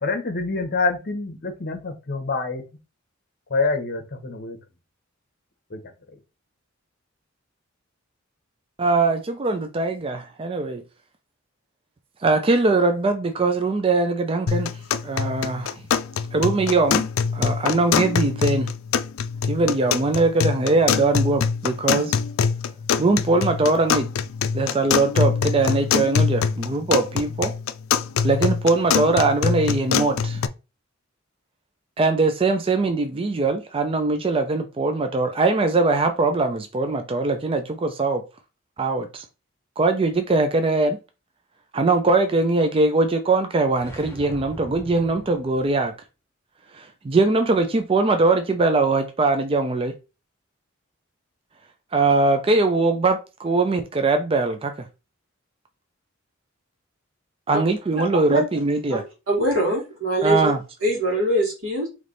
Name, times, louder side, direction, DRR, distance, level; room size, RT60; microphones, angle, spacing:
voice 1, 0.0-2.6 3.5-4.6 5.7-5.8, left 3 dB, 50° left, 0.9 m, -26 dB
voice 2, 8.8-10.8 12.2-14.7 15.0-15.8 16.3-17.0 17.3-18.7 19.5-22.1 23.0-24.1 24.5-27.5 28.2-30.4 32.0-38.2 38.8-39.3 39.8-41.0 41.7-45.9 46.7-49.9 51.9-54.9 57.5-59.0 60.2-60.6, right 3 dB, 25° right, 0.4 m, -21 dB
sound 1, 14.5-30.5, left 6 dB, 90° left, 0.4 m, -24 dB
sound 2, 43.7-45.9, equal, 10° left, 0.8 m, -40 dB
voice 3, 58.1-58.4 58.9-59.0 59.3-60.5 60.8-61.9, right 1 dB, 90° right, 1.9 m, -23 dB
3.3 x 3.1 x 3.9 m
head